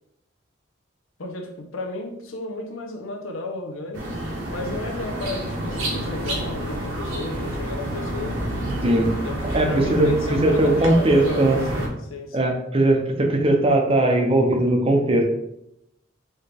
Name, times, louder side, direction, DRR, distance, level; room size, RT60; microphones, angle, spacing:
voice 1, 1.2-4.1 4.5-8.4 9.0-9.4 9.6-12.5, left 2 dB, 85° left, 3 dB, 0.8 m, -34 dB
sound 1, 3.9-11.9, right 1 dB, 75° right, 1.2 m, -29 dB
voice 2, 9.5-11.6 12.3-15.2, right 1 dB, 30° right, 3 dB, 0.6 m, -19 dB
4.3 x 3.4 x 3.3 m, 0.81 s
head